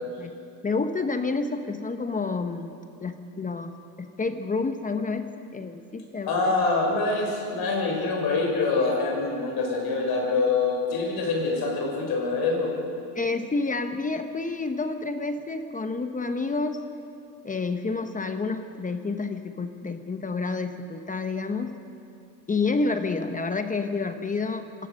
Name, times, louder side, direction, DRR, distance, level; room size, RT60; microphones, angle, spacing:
voice 1, 0.6-3.7 4.0-6.5 13.1-16.8 17.4-21.7 22.5-24.9, left 3 dB, 15° left, 8 dB, 1.0 m, -29 dB
voice 2, 6.3-12.8, left 3 dB, 50° left, 0 dB, 6.9 m, -25 dB
25.5 x 17.0 x 6.5 m, 2.5 s
supercardioid pair, 115°, 46 cm